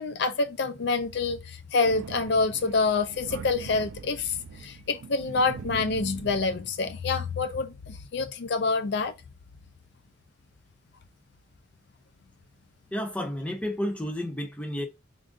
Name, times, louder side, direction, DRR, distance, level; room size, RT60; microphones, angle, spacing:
voice 1, 0.0-9.1, left 4 dB, 55° left, 0.4 m, -27 dB
Thunder, 1.8-6.9, right 6 dB, 80° right, 0.4 m, -42 dB
voice 2, 12.9-14.9, equal, 5° left, 0.5 m, -31 dB
3.7 x 2.5 x 3.6 m
head